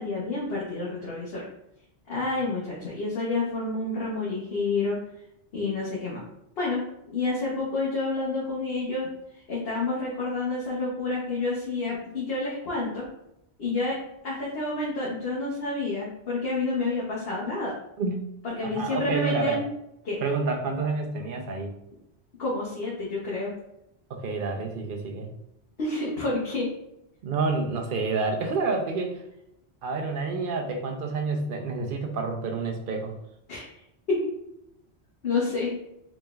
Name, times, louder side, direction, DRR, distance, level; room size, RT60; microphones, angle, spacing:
voice 1, 0.0-1.5 2.1-5.0 5.5-6.2 6.6-6.8 7.1-9.1 9.5-13.1 13.6-14.0 14.2-17.8 18.4-19.6 20.1-20.2 22.4-23.5 25.8-26.7 33.5-33.6 34.1-34.3 35.2-35.8, left 3 dB, 65° left, -5 dB, 1.1 m, -29 dB
voice 2, 18.6-19.6 20.2-21.7 24.1-25.3 27.2-29.2 29.8-33.1, right 4 dB, 60° right, 3 dB, 0.7 m, -28 dB
3.9 x 3.3 x 2.3 m, 0.82 s
omnidirectional pair, 1.1 m